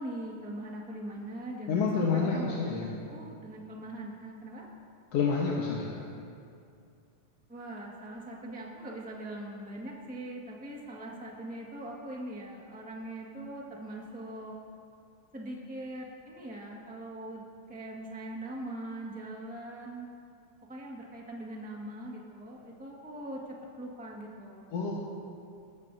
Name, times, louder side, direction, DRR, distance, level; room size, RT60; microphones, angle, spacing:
voice 1, 0.0-4.6 7.5-14.5 15.3-20.1 20.7-23.4 23.8-24.7, right 1 dB, 5° right, -2 dB, 0.6 m, -41 dB
voice 2, 1.7-2.9 5.1-6.0 24.7-25.0, left 5 dB, 60° left, -4 dB, 2.0 m, -28 dB
20.5 x 13.5 x 2.7 m, 2.4 s
omnidirectional pair, 3.5 m